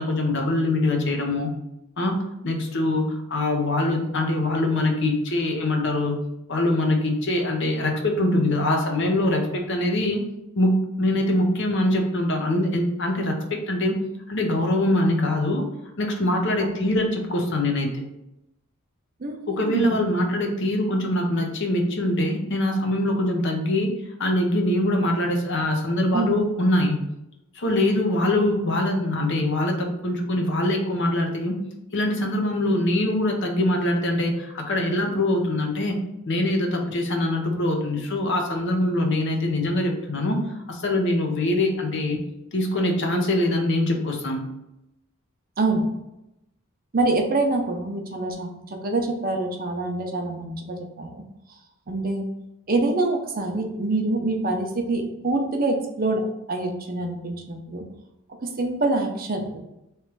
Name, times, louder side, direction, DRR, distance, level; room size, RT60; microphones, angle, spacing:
voice 1, 0.0-1.5 2.0-6.2 6.5-10.2 10.6-14.0 14.3-15.7 16.0-18.0 19.5-23.9 24.2-27.0 27.5-31.6 31.9-36.0 36.3-42.2 42.5-44.4, left 1 dB, 55° left, 2 dB, 0.8 m, -23 dB
voice 2, 19.2-20.0 26.1-26.4 28.4-28.5 45.6-45.9 46.9-51.2 51.9-52.3 52.7-56.2 56.5-57.8 58.4-59.6, right 2 dB, 45° right, 3 dB, 0.7 m, -25 dB
3.2 x 3.1 x 4.6 m, 0.87 s
head